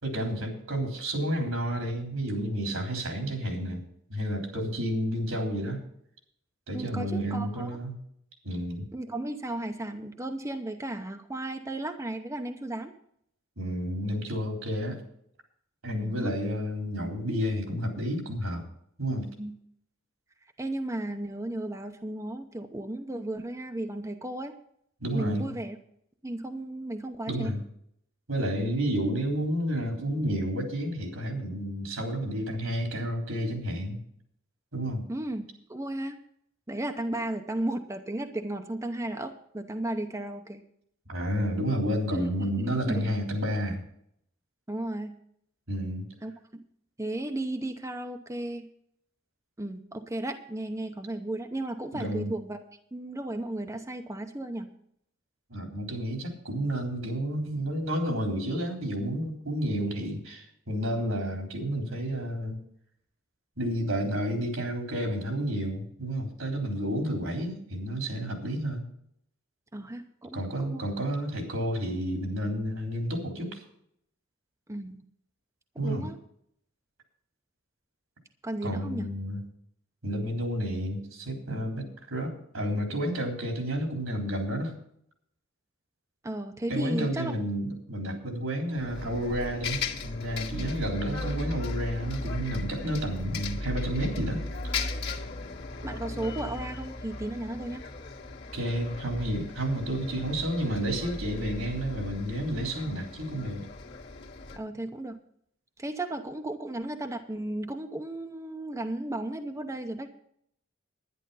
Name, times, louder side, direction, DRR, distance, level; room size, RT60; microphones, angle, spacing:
voice 1, 0.0-5.8 6.7-8.0 8.4-8.9 13.6-15.0 15.8-18.7 19.0-19.3 25.0-25.6 27.3-27.6 28.3-34.0 34.7-35.0 41.1-43.8 45.7-46.1 51.9-52.3 55.5-62.6 63.6-68.8 70.3-73.6 75.8-76.1 78.6-79.4 80.0-84.8 86.7-94.4 98.5-103.7, equal, 85° right, 2 dB, 3.7 m, -31 dB
voice 2, 6.7-7.7 8.9-12.9 16.0-16.4 19.4-19.6 20.6-24.5 25.1-25.8 26.2-27.6 35.1-36.2 36.7-40.6 42.1-43.1 44.7-45.2 46.2-46.6 47.0-48.7 49.6-52.6 52.9-54.7 69.7-70.8 74.7-75.0 75.8-76.2 78.4-79.1 86.2-87.3 95.8-97.8 104.6-105.2 105.8-110.1, right 1 dB, 15° right, 5 dB, 0.8 m, -34 dB
Bus, 88.8-104.6, left 2 dB, 55° left, 1.8 m, -36 dB
11.0 x 10.5 x 5.6 m, 0.70 s
head